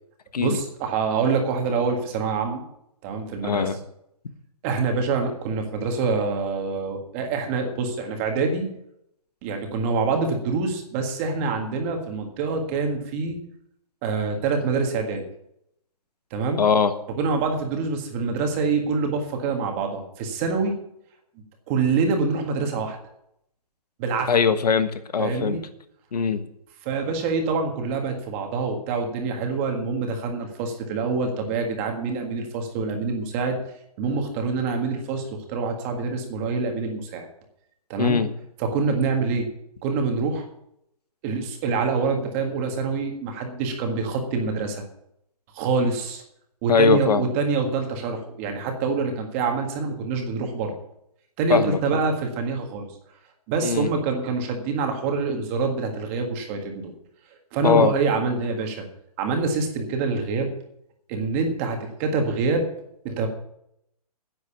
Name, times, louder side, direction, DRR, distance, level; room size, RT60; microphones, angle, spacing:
voice 1, 0.4-2.6 3.0-3.7 4.6-8.7 9.4-13.4 14.0-15.2 16.3-16.6 17.2-20.7 21.7-23.0 24.0-24.3 25.2-25.6 26.8-33.6 34.0-37.3 37.9-38.2 38.6-39.5 39.8-40.4 41.2-44.8 45.5-46.2 46.6-50.7 51.4-52.9 53.5-56.9 57.5-58.8 59.2-60.5 61.1-62.7 63.0-63.3, right 4 dB, 20° right, 4 dB, 1.7 m, -25 dB
voice 2, 3.4-3.8 16.6-16.9 24.3-25.6 26.1-26.4 38.0-38.3 46.7-47.3 51.5-51.8 53.6-53.9 57.6-57.9, left 5 dB, 90° left, 10 dB, 1.4 m, -21 dB
10.5 x 8.1 x 8.3 m, 0.76 s
hypercardioid pair, 170°, 20 cm